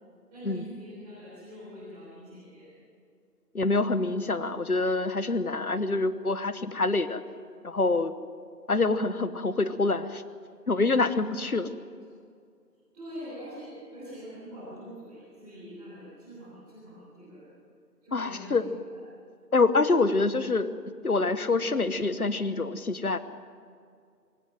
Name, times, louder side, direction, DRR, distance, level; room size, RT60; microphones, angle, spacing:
voice 1, 0.3-2.7 11.3-11.5 12.9-17.5 18.0-19.0, equal, 5° right, -17 dB, 4.1 m, -44 dB
voice 2, 3.5-7.2 7.6-8.1 8.7-10.2 10.7-11.7 18.1-18.7 19.5-20.7 21.0-23.2, left 3 dB, 60° left, 13 dB, 1.2 m, -26 dB
24.5 x 15.5 x 7.8 m, 2.3 s
figure-of-eight pair, 165°, 49 cm